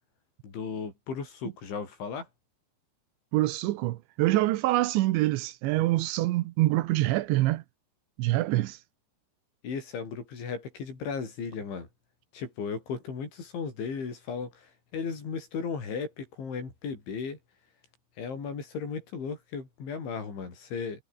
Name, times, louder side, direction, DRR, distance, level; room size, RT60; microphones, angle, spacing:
voice 1, 0.4-2.3 9.6-11.9 12.3-17.4 18.2-21.0, left 5 dB, 85° left, 9.0 m, -36 dB
voice 2, 3.3-7.6 8.2-8.8, right 17 dB, 80° right, 3.2 m, -25 dB
omnidirectional pair, 5.2 m